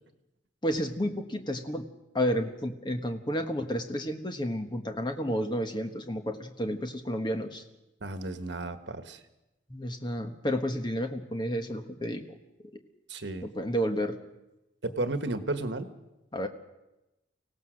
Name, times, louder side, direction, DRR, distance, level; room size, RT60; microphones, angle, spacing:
voice 1, 0.6-1.8 2.1-7.6 9.7-12.2 13.4-14.2 16.3-16.5, equal, 25° left, 6 dB, 1.4 m, -31 dB
voice 2, 8.0-9.2 13.1-13.5 14.8-15.9, right 2 dB, 75° right, 9 dB, 1.4 m, -33 dB
24.5 x 17.0 x 6.4 m, 0.96 s
head